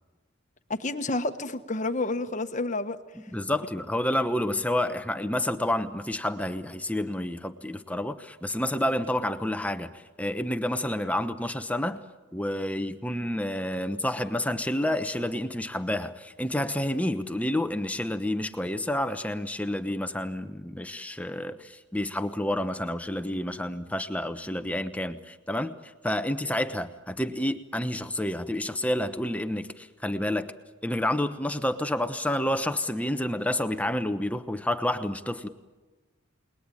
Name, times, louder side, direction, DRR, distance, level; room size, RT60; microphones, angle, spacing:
voice 1, 0.7-3.0, left 2 dB, 35° left, 9 dB, 1.3 m, -29 dB
voice 2, 3.3-12.0 12.3-30.5 30.8-35.5, left 1 dB, 5° left, 9 dB, 1.0 m, -29 dB
29.5 x 20.5 x 9.1 m, 1.3 s
head